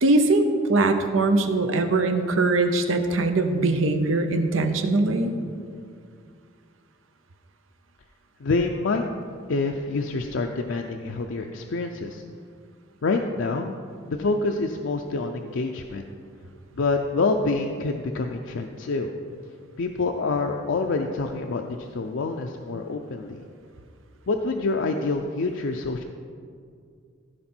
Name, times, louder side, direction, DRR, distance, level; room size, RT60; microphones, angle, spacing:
voice 1, 0.0-5.3, right 2 dB, 90° right, 7 dB, 0.8 m, -21 dB
voice 2, 8.4-9.0 9.5-12.2 13.0-13.7 14.1-16.0 16.7-19.1 19.8-23.4 24.3-26.0, left 3 dB, 70° left, 3 dB, 0.5 m, -27 dB
15.0 x 5.2 x 4.4 m, 2.3 s
head